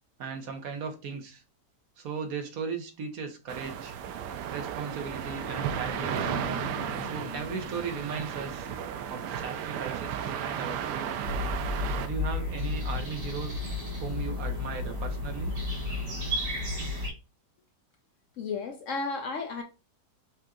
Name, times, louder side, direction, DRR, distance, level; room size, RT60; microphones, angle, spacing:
voice 1, 0.2-1.4 2.0-3.9 4.5-6.5 7.0-8.7 9.1-11.4 12.0-13.6 14.0-15.6, right 5 dB, 65° right, 1.2 m, -37 dB
sound 1, 3.5-12.1, right 8 dB, 90° right, 1.2 m, -34 dB
sound 2, 4.8-9.7, left 8 dB, 85° left, 1.2 m, -44 dB
sound 3, 11.2-17.1, left 2 dB, 45° right, 1.8 m, -32 dB
voice 2, 18.4-19.6, left 4 dB, 60° left, 0.9 m, -33 dB
5.6 x 2.6 x 3.6 m
omnidirectional pair, 1.7 m